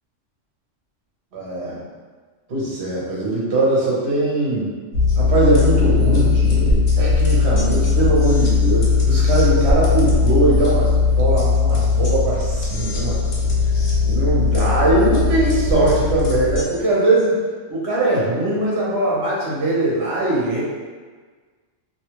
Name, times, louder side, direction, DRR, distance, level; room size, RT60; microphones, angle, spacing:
voice 1, 1.3-1.8 2.5-4.7 5.2-13.2 14.1-17.4 17.7-20.6, right 2 dB, 60° right, -6 dB, 1.1 m, -20 dB
sound 1, 4.9-16.6, left 4 dB, 70° left, 0.9 m, -18 dB
2.8 x 2.3 x 3.0 m, 1.5 s
omnidirectional pair, 1.3 m